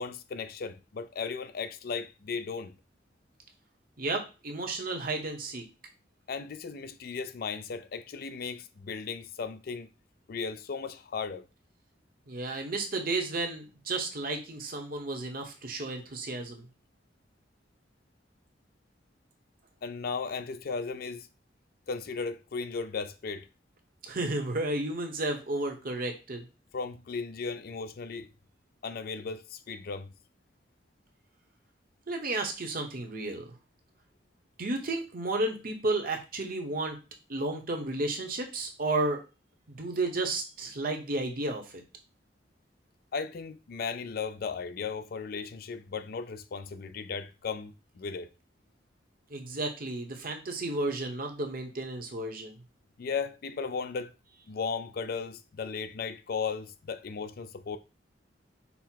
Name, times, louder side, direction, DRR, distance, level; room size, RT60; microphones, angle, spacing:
voice 1, 0.0-2.7 6.3-9.9 10.3-11.4 19.8-21.3 21.9-23.5 26.7-28.3 28.8-30.1 43.1-48.3 53.0-54.1 54.5-57.8, left 5 dB, 55° left, 0.4 m, -36 dB
voice 2, 4.0-5.6 12.3-16.7 24.0-26.4 32.1-33.5 34.6-37.0 37.3-39.2 39.7-41.8 49.3-52.6, right 2 dB, 50° right, 1.0 m, -32 dB
5.6 x 2.1 x 4.5 m
head